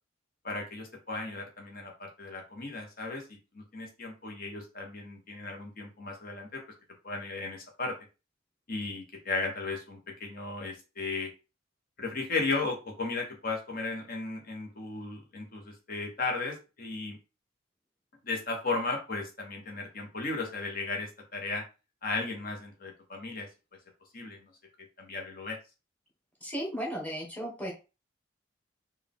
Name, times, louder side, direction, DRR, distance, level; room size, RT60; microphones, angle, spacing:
voice 1, 0.4-6.6 7.0-7.9 8.7-11.3 12.0-17.2 18.2-21.6 22.0-23.5 24.1-24.5 25.0-25.6, left 3 dB, 50° left, 1 dB, 1.5 m, -35 dB
voice 2, 26.4-27.7, equal, 10° left, -1 dB, 1.5 m, -35 dB
4.6 x 2.8 x 3.7 m, 0.31 s
head